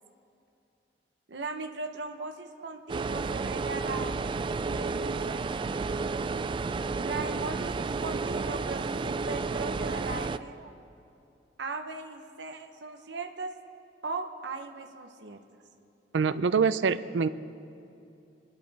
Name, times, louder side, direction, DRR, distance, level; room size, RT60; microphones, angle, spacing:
voice 1, 1.3-4.1 4.6-5.5 7.0-10.7 11.6-13.5 14.0-15.4, right 3 dB, 70° right, 4 dB, 0.9 m, -38 dB
sound 1, 2.9-10.4, right 4 dB, 30° right, 0.3 m, -31 dB
voice 2, 16.1-17.3, right 5 dB, 90° right, 14 dB, 0.5 m, -25 dB
24.5 x 11.5 x 4.1 m, 2.7 s
head